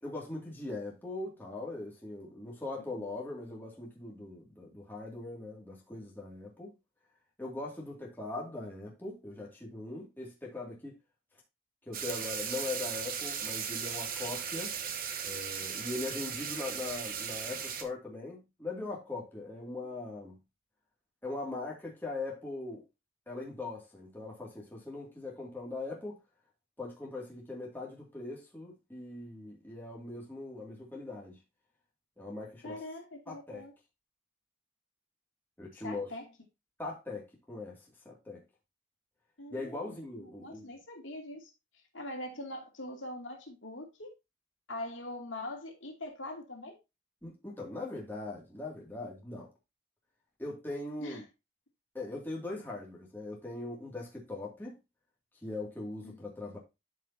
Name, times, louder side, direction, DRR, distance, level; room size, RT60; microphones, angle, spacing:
voice 1, 0.0-6.7 7.4-10.9 11.9-14.7 15.2-20.4 21.2-22.8 23.3-26.2 26.8-31.4 32.2-32.8 33.3-33.6 35.6-36.1 36.8-37.8 38.0-38.4 39.5-40.7 47.2-49.5 50.4-51.2 51.9-54.7 55.4-56.6, left 2 dB, 10° left, 2.4 m, -40 dB
sound 1, 11.9-17.8, right 7 dB, 45° right, 1.1 m, -37 dB
voice 2, 32.6-33.7 35.7-36.3 39.4-41.5 41.9-44.1 44.7-46.8 51.0-51.2 56.0-56.5, left 1 dB, 75° left, 2.6 m, -43 dB
12.5 x 5.1 x 2.8 m
head